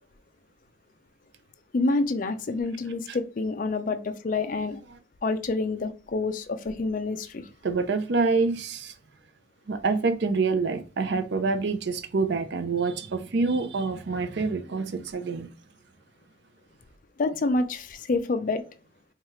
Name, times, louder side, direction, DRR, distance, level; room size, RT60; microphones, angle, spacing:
voice 1, 1.7-4.8 5.2-7.5 17.2-18.6, left 3 dB, 40° left, 0.4 m, -27 dB
voice 2, 7.6-9.0 9.7-15.5, right 4 dB, 55° right, 0.5 m, -26 dB
4.6 x 2.3 x 3.0 m
head